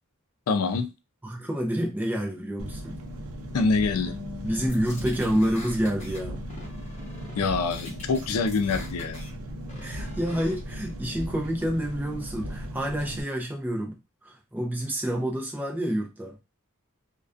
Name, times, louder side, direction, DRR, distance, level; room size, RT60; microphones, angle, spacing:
voice 1, 0.5-0.9 3.5-4.2 7.3-9.3, left 4 dB, 90° left, 0.4 m, -25 dB
voice 2, 1.2-3.0 4.4-6.4 9.8-16.4, equal, 10° right, 0.4 m, -28 dB
Engine, 2.6-13.2, equal, 85° right, 0.5 m, -37 dB
Bass guitar, 4.0-10.3, left 5 dB, 25° right, 1.2 m, -47 dB
sound 1, 4.7-6.2 6.5-7.4 7.7-9.3 9.7-10.5, left 1 dB, 30° left, 0.8 m, -44 dB
2.4 x 2.2 x 2.4 m
head